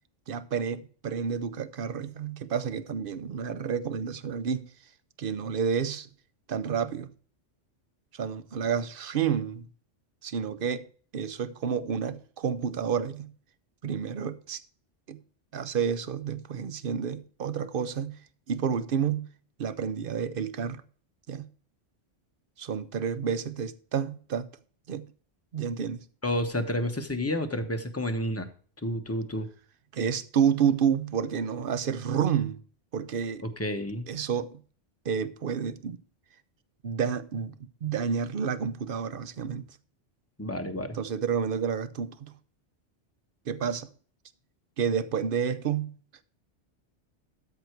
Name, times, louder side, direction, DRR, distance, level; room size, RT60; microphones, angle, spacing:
voice 1, 0.3-4.7 5.2-6.1 6.5-7.1 8.1-9.7 10.2-10.9 11.1-13.3 13.8-14.6 15.1-15.2 15.5-18.2 18.5-19.3 19.6-20.8 21.3-21.5 22.6-24.5 24.9-25.1 25.5-26.0 29.9-32.6 32.9-33.4 34.1-34.6 35.0-36.0 36.8-37.6 37.8-39.6 40.9-42.3 43.5-43.9 44.8-46.0, right 7 dB, 55° right, 0.9 m, -30 dB
voice 2, 26.2-28.5 28.8-29.5 33.4-34.0 40.4-41.0, left 1 dB, 15° left, 1.0 m, -30 dB
13.0 x 4.9 x 4.5 m
omnidirectional pair, 1.2 m